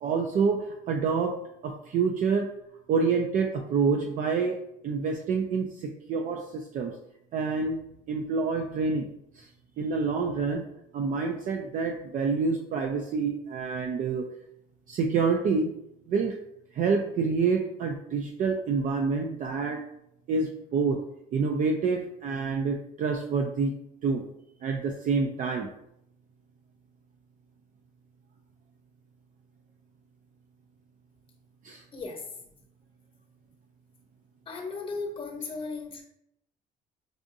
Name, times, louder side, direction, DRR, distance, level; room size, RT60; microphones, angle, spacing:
voice 1, 0.0-1.4 1.6-2.5 2.9-6.9 7.3-7.8 8.1-9.1 9.3-9.5 9.8-10.6 10.9-14.3 14.9-15.7 16.1-16.4 16.7-19.8 20.3-21.0 21.3-23.7 24.0-24.2 24.6-25.7 31.6-31.8, right 5 dB, 50° right, 2 dB, 0.4 m, -27 dB
voice 2, 31.9-32.2 34.5-36.0, left 3 dB, 30° left, 2 dB, 0.9 m, -36 dB
4.8 x 2.5 x 2.6 m, 0.78 s
cardioid pair, 110°, 17 cm